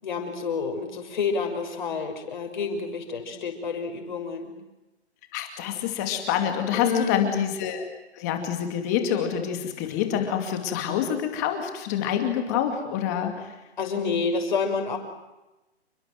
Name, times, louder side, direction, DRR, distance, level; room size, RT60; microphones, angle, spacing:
voice 1, 0.0-4.5 6.7-7.3 13.8-15.0, left 5 dB, 45° left, 3 dB, 6.3 m, -28 dB
voice 2, 5.3-7.8 8.2-13.5, left 9 dB, 15° left, 5 dB, 2.4 m, -27 dB
29.0 x 24.5 x 7.9 m, 1.0 s
hypercardioid pair, 180°, 33 cm